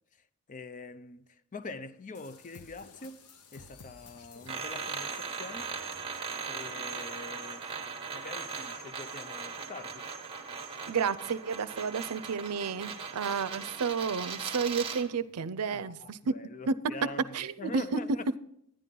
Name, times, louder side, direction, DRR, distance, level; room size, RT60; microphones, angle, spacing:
voice 1, 0.5-5.7 6.5-7.7 8.1-10.1 15.6-18.4, left 3 dB, 35° left, 0.5 m, -44 dB
sound 1, 2.1-6.3, left 4 dB, 85° left, 0.9 m, -54 dB
sound 2, 4.5-15.1, right 5 dB, 25° right, 1.1 m, -39 dB
voice 2, 10.9-16.3 16.7-16.9 17.3-18.0, right 5 dB, 85° right, 0.5 m, -31 dB
11.0 x 10.0 x 3.8 m
head